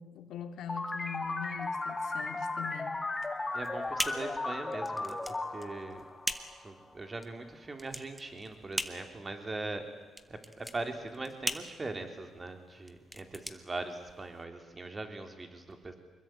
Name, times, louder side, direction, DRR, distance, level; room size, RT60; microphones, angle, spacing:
voice 1, 0.0-3.0, left 8 dB, 80° left, 6 dB, 2.8 m, -42 dB
sound 1, 0.7-6.9, left 2 dB, 20° left, 2.6 m, -36 dB
sound 2, 3.1-14.4, equal, ahead, 1.7 m, -40 dB
voice 2, 3.5-6.0 6.6-9.9 10.3-15.9, right 2 dB, 25° right, 6 dB, 3.8 m, -41 dB
25.0 x 21.5 x 9.3 m, 1.2 s
cardioid pair, 90°, 0 cm